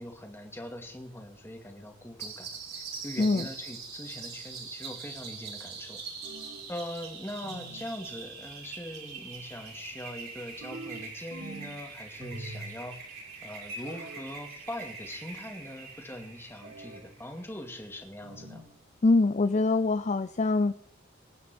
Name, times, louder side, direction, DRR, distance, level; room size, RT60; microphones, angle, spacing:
voice 1, 0.0-6.0 6.7-13.0 13.4-18.6, left 1 dB, 10° left, 3 dB, 2.3 m, -42 dB
sound 1, 2.2-17.4, right 5 dB, 50° right, 5.7 m, -43 dB
voice 2, 3.2-3.5 19.0-20.7, left 3 dB, 35° left, 11 dB, 0.5 m, -24 dB
sound 2, 6.2-6.8 7.4-7.9 10.6-11.8 12.2-12.9 13.8-14.3 16.6-17.1 18.2-18.7, right 2 dB, 85° right, 2.5 m, -44 dB
25.0 x 9.5 x 4.4 m, 0.66 s
head